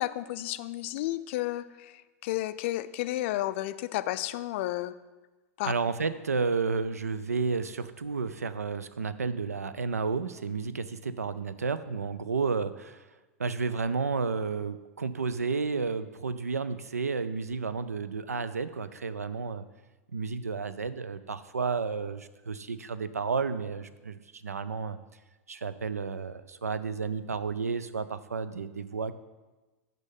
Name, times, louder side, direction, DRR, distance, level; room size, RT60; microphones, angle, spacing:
voice 1, 0.0-1.9 2.2-4.9 5.6-5.7, left 15 dB, 50° left, 14 dB, 0.3 m, -32 dB
voice 2, 5.6-13.1 13.4-19.7 20.1-25.0 25.5-29.1, right 5 dB, 85° right, 13 dB, 0.3 m, -31 dB
6.1 x 5.2 x 5.6 m, 1.2 s
figure-of-eight pair, 90°, 8 cm